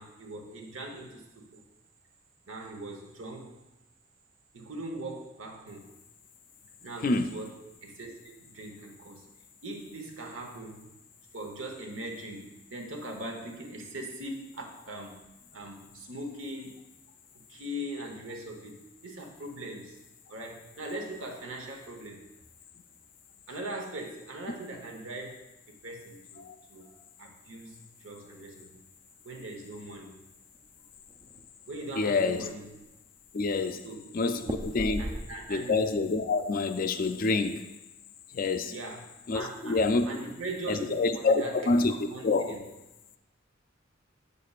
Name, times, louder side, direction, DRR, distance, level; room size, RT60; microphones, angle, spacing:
voice 1, 0.0-1.6 2.5-3.5 4.5-5.9 6.8-7.5 7.8-9.3 9.6-10.9 11.3-15.1 15.5-16.8 17.5-18.8 19.0-20.0 20.3-22.2 23.5-25.4 25.7-26.9 27.2-28.8 29.2-30.2 31.7-32.8 33.8-34.4 35.0-35.8 38.7-42.6, right 1 dB, 85° right, 1.0 m, -41 dB
sound 1, 30.5-31.4 31.9-32.0 32.3-32.9 34.4-35.7 36.0-36.5, right 1 dB, 25° right, 0.4 m, -37 dB
voice 2, 32.0-32.4 33.3-33.8 34.1-35.0 35.5-37.6 38.3-38.7 39.3-40.1 40.7-41.9 42.2-42.5, left 3 dB, 45° left, 0.4 m, -27 dB
8.2 x 6.6 x 2.4 m
head